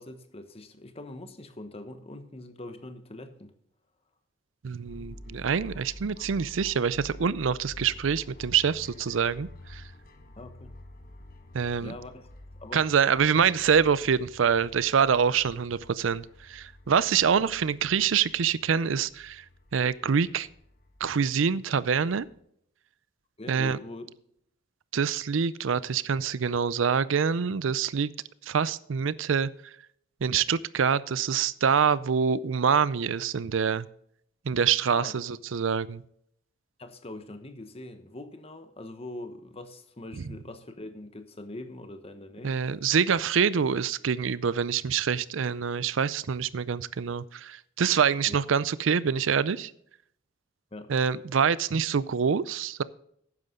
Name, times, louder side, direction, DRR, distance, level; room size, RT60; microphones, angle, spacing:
voice 1, 0.0-3.5 10.4-10.7 11.8-12.3 12.6-12.9 23.4-24.1 34.9-35.2 36.8-42.6 48.3-48.4 50.7-50.9, left 2 dB, 30° left, 1.1 m, -42 dB
voice 2, 4.6-9.8 11.5-11.9 12.7-19.4 19.7-20.5 21.0-22.3 23.5-23.8 24.9-28.1 28.5-29.5 30.2-33.9 34.5-36.0 42.4-49.7 50.9-52.8, right 7 dB, 80° right, 0.5 m, -25 dB
sound 1, 4.9-22.4, left 1 dB, 50° left, 1.3 m, -49 dB
12.0 x 9.6 x 3.7 m
head